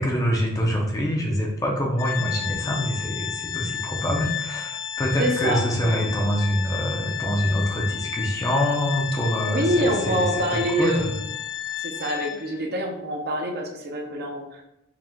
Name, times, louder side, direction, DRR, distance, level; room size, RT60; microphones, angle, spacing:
voice 1, 0.0-11.2, equal, 15° left, 0 dB, 0.6 m, -25 dB
Organ, 2.0-12.6, left 10 dB, 85° left, 0.4 m, -32 dB
voice 2, 5.2-6.1 9.5-11.1 11.8-14.6, equal, 45° right, 1 dB, 0.7 m, -26 dB
4.8 x 2.4 x 3.5 m, 0.85 s
head